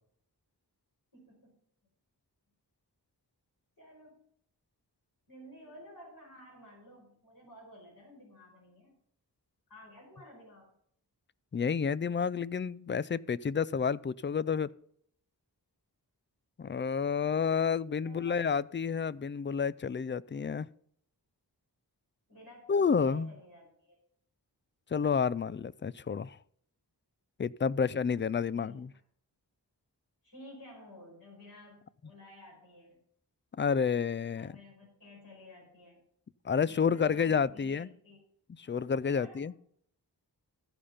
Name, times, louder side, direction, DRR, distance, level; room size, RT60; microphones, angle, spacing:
voice 1, 1.1-1.6 3.8-4.3 5.3-8.9 9.7-10.7 18.0-18.5 22.3-24.0 27.9-28.0 28.5-28.9 30.2-33.0 34.3-36.0 36.6-38.2 39.0-39.4, equal, 55° left, 5.3 m, -53 dB
voice 2, 11.5-14.7 16.6-20.7 22.7-23.3 24.9-26.4 27.4-28.9 33.5-34.6 36.4-37.9 38.6-39.5, left 6 dB, 30° left, 0.4 m, -30 dB
15.0 x 5.0 x 5.6 m
wide cardioid pair, 60°, 41 cm